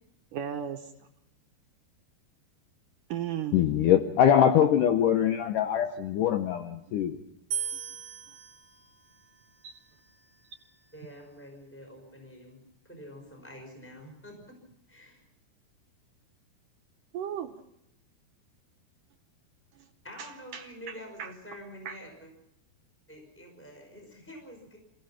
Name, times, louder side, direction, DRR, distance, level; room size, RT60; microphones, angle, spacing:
voice 1, 0.3-0.9 3.1-3.6 9.6-9.7 17.1-17.5 19.8-19.9 20.2-21.4 21.8-22.0, right 9 dB, 70° right, 2.1 m, -36 dB
voice 2, 3.5-7.2, left 9 dB, 75° left, 1.9 m, -23 dB
sound 1, 7.5-10.7, right 8 dB, 50° right, 1.9 m, -39 dB
voice 3, 10.9-12.6 12.9-14.6 14.9-15.2 20.0-22.1 23.1-24.8, equal, 5° left, 5.2 m, -47 dB
28.0 x 16.0 x 5.9 m
omnidirectional pair, 4.7 m